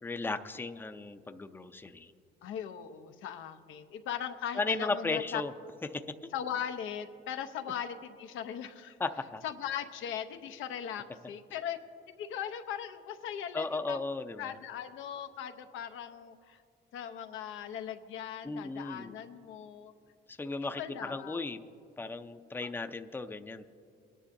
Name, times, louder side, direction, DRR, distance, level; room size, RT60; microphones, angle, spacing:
voice 1, 0.0-2.1 4.6-5.5 5.9-6.0 9.0-9.4 13.5-14.6 18.4-19.1 20.3-21.6 22.0-23.6, left 3 dB, 10° left, 8 dB, 0.5 m, -35 dB
voice 2, 2.4-5.4 6.3-9.0 9.4-11.8 12.2-14.0 14.4-16.6 16.9-19.9 20.8-21.5 22.6-22.7, left 9 dB, 90° left, 7 dB, 0.7 m, -39 dB
22.0 x 10.0 x 2.6 m, 2.4 s
cardioid pair, 90°, 20 cm